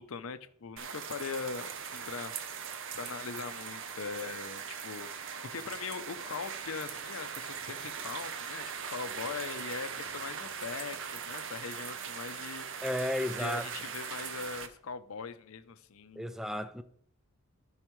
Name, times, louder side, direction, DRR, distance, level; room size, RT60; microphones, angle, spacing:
voice 1, 0.0-2.5 2.9-12.7 13.4-16.3, left 5 dB, 70° left, 0.6 m, -41 dB
sound 1, 0.8-14.7, right 7 dB, 60° right, 0.7 m, -40 dB
voice 2, 12.8-13.6 16.2-16.8, equal, ahead, 0.3 m, -33 dB
12.5 x 5.6 x 3.1 m
head